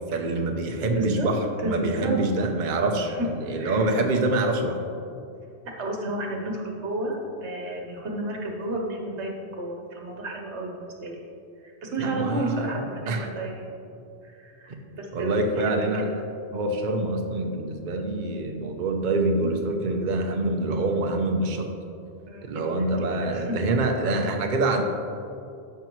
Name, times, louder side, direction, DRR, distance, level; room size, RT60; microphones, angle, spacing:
voice 1, 0.1-4.8 12.0-12.8 13.1-13.3 14.7-14.8 15.1-16.2 16.5-21.7 22.4-24.8, right 2 dB, 50° right, 3 dB, 0.8 m, -26 dB
voice 2, 0.9-1.3 1.6-2.2 3.6-3.9 5.6-11.2 11.6-13.7 14.2-15.7 22.3-22.9 23.2-23.6 24.0-24.2, right 1 dB, 90° right, 1 dB, 1.4 m, -32 dB
13.0 x 5.8 x 3.1 m, 2.6 s
omnidirectional pair, 1.1 m